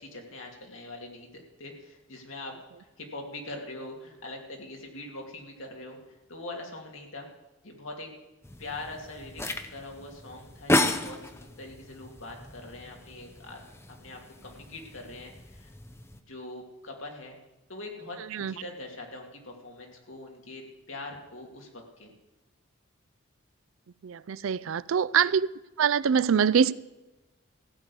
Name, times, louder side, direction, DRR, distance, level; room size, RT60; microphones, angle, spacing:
voice 1, 0.0-2.5 3.0-6.0 6.3-7.3 7.6-8.1 8.6-9.4 9.7-13.6 14.0-15.7 16.3-17.4 17.7-21.7 22.0-22.1, left 2 dB, 70° left, 2.7 m, -42 dB
sound 1, 8.4-16.2, left 1 dB, 10° left, 0.6 m, -33 dB
voice 2, 24.0-25.5 25.8-26.7, right 7 dB, 70° right, 0.4 m, -24 dB
15.5 x 6.7 x 8.5 m
head